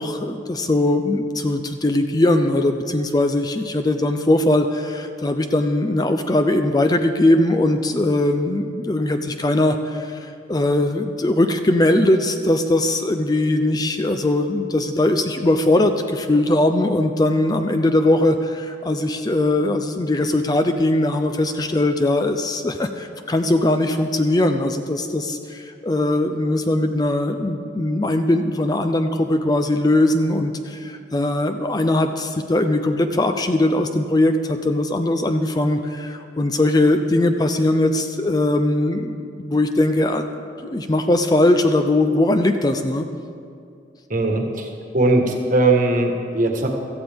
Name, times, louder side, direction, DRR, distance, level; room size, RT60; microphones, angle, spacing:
voice 1, 0.0-40.2 40.6-43.1, left 1 dB, 20° left, 7 dB, 0.5 m, -20 dB
voice 2, 44.1-46.7, right 2 dB, 45° right, 3 dB, 1.4 m, -19 dB
16.5 x 14.0 x 3.5 m, 2.4 s
head